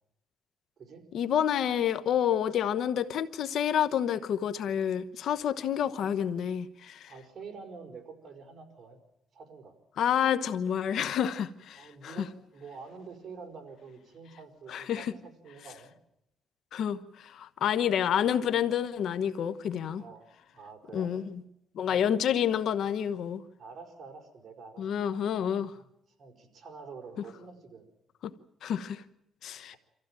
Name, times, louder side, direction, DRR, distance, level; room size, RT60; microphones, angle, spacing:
voice 1, 1.1-7.1 10.0-12.2 14.7-15.1 16.7-20.0 20.9-21.2 21.7-23.4 24.8-25.7 28.2-28.3 28.6-29.0 29.4-29.8, left 9 dB, 70° left, 1.0 m, -29 dB
voice 2, 7.0-9.0 9.3-9.8 11.7-15.9 19.9-21.1 21.8-22.3 23.6-25.9 26.2-27.8 29.7-29.8, right 4 dB, 45° right, 4.9 m, -48 dB
25.5 x 15.0 x 9.0 m
cardioid pair, 90°, 0 cm